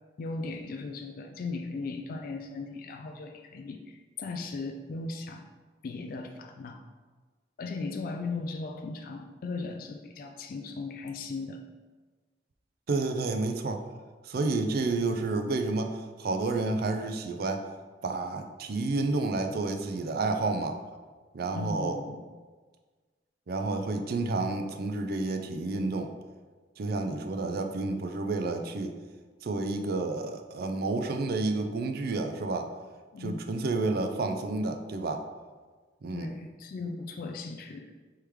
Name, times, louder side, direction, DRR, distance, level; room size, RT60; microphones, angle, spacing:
voice 1, 0.2-5.5 5.8-6.8 7.6-11.6 21.5-22.3 33.1-33.7 36.1-37.9, left 3 dB, 55° left, 4 dB, 0.3 m, -37 dB
voice 2, 12.9-13.8 14.2-17.6 18.0-20.8 21.3-22.0 23.5-26.1 26.8-28.9 29.4-32.7 33.2-35.2 36.0-36.3, right 3 dB, 60° right, 6 dB, 0.4 m, -30 dB
3.5 x 3.2 x 4.6 m, 1.4 s
head